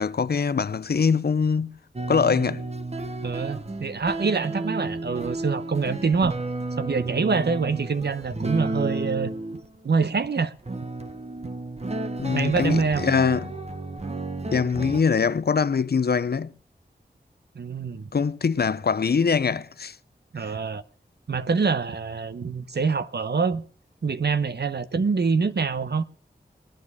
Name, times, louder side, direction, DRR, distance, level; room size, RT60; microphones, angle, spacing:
voice 1, 0.0-1.8 2.1-2.6 12.2-13.5 14.5-16.5 18.1-20.0, left 5 dB, 65° left, 0.6 m, -23 dB
sound 1, 2.0-9.8 10.6-15.0, right 2 dB, 35° right, 1.0 m, -32 dB
voice 2, 3.2-6.4 6.8-9.3 9.8-10.5 12.3-13.0 17.5-18.1 20.3-20.8 21.3-23.6 24.0-26.0, right 5 dB, 70° right, 0.8 m, -25 dB
19.5 x 9.7 x 4.9 m
wide cardioid pair, 75°, 18 cm